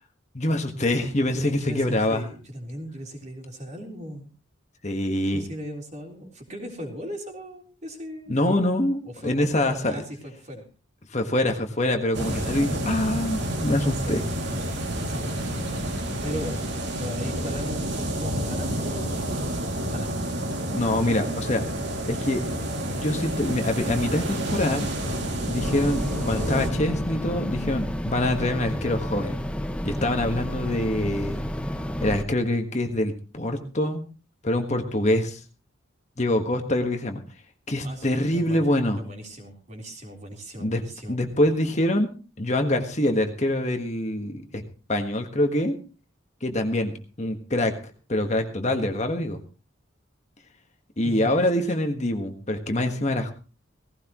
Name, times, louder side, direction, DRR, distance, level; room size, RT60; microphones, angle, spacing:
voice 1, 0.3-2.2 4.8-5.5 8.3-10.0 11.1-14.2 20.7-21.7 22.1-22.4 22.8-24.9 25.5-29.4 29.8-31.4 32.0-34.0 34.4-35.4 36.2-37.2 37.7-39.0 40.6-40.8 41.1-42.1 42.4-44.6 44.9-45.8 46.4-46.9 47.2-47.7 48.1-49.4 51.0-53.3, left 1 dB, 35° left, 5 dB, 1.5 m, -25 dB
voice 2, 1.3-4.3 5.3-8.4 9.0-10.6 13.7-15.6 16.2-16.6 16.9-20.1 20.9-21.2 37.8-38.7 39.0-41.2 51.0-51.8, equal, 35° right, 2 dB, 3.6 m, -38 dB
sound 1, 12.1-26.7, right 1 dB, 55° right, 2.5 m, -29 dB
sound 2, 24.8-30.4, left 2 dB, 55° left, 2.2 m, -38 dB
sound 3, 25.6-32.2, equal, 5° left, 0.8 m, -31 dB
17.5 x 16.0 x 3.0 m, 0.35 s
head